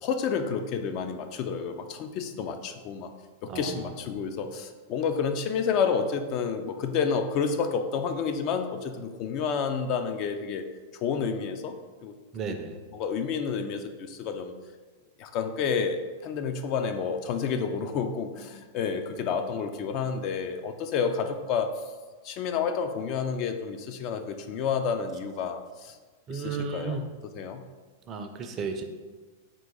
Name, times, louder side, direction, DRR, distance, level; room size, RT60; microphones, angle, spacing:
voice 1, 0.0-3.1 3.4-10.6 10.9-11.8 12.0-12.1 12.9-14.5 15.2-21.7 22.2-26.0 26.3-27.0 27.3-27.6, left 6 dB, 45° left, 7 dB, 0.3 m, -30 dB
voice 2, 3.5-3.9 12.3-12.8 26.3-27.1 28.1-28.8, right 5 dB, 35° right, 6 dB, 0.4 m, -34 dB
3.7 x 2.5 x 3.7 m, 1.4 s
hypercardioid pair, 100°, 0 cm